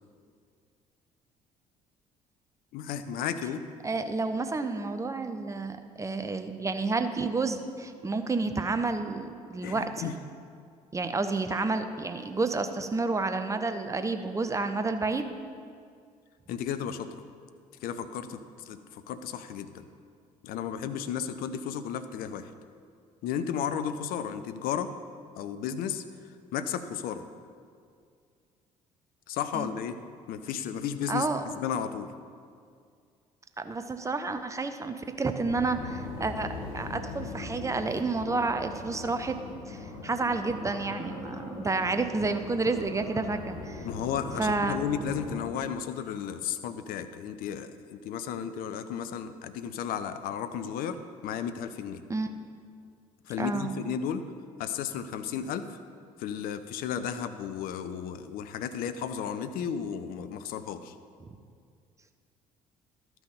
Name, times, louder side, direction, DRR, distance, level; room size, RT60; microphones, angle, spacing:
voice 1, 2.7-3.6 9.6-10.1 16.5-17.1 17.8-19.9 20.4-22.5 23.2-24.9 25.4-26.0 26.5-27.2 29.3-30.0 30.3-31.3 31.6-32.1 43.8-52.0 53.3-54.2 54.6-55.8 56.2-60.9, left 8 dB, 50° left, 10 dB, 0.6 m, -33 dB
voice 2, 3.8-10.2 10.9-15.3 29.5-29.7 31.1-31.4 33.6-39.4 39.7-43.9 44.4-44.9 52.1-52.3 53.4-53.7 61.2-61.3, right 3 dB, 15° right, 8 dB, 0.6 m, -30 dB
sound 1, 35.4-45.5, left 3 dB, 70° left, 1.2 m, -40 dB
12.0 x 6.1 x 5.2 m, 2.2 s
figure-of-eight pair, 50°, 19 cm